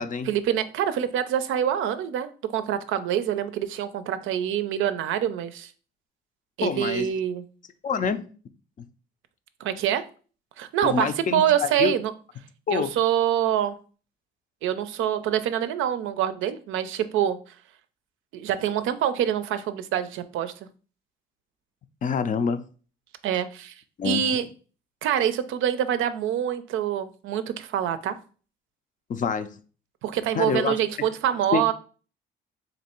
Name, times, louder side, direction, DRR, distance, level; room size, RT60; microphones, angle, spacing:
voice 1, 0.3-5.7 6.6-7.4 9.6-10.0 10.6-12.1 12.7-13.8 14.6-17.4 18.3-20.5 23.2-23.7 24.0-24.5 25.0-28.2 30.0-31.7, right 10 dB, 80° right, 0.4 m, -25 dB
voice 2, 6.6-7.1 7.8-8.3 10.8-11.9 12.7-12.9 22.0-22.6 24.0-24.2 29.1-29.6 30.4-30.7 31.5-31.6, left 6 dB, 40° left, 0.4 m, -26 dB
3.1 x 2.6 x 4.3 m
cardioid pair, 90°, 20 cm